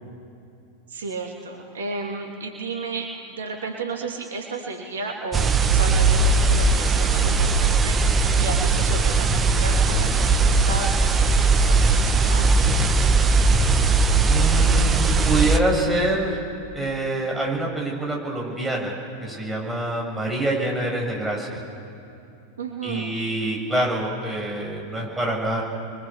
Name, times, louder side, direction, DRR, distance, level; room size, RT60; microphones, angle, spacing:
voice 1, 0.9-12.7 22.6-23.1, right 3 dB, 65° right, 1 dB, 2.7 m, -33 dB
sound 1, 5.3-15.6, right 3 dB, 20° right, 1.4 m, -19 dB
voice 2, 14.2-16.4 16.7-21.6 22.8-25.6, right 2 dB, 5° right, -3 dB, 7.2 m, -26 dB
29.0 x 23.5 x 7.2 m, 2.7 s
figure-of-eight pair, 90°, 0 cm